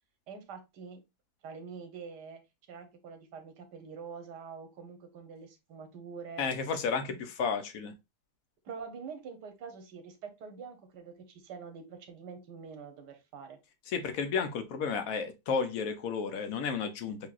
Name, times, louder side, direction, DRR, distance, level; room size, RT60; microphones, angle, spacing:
voice 1, 0.3-1.0 1.4-2.4 2.7-6.5 7.1-7.3 8.6-13.6, right 5 dB, 80° right, 1.6 m, -45 dB
voice 2, 6.4-7.9 13.9-17.2, left 5 dB, 65° left, 1.0 m, -32 dB
6.8 x 2.8 x 2.4 m
omnidirectional pair, 1.8 m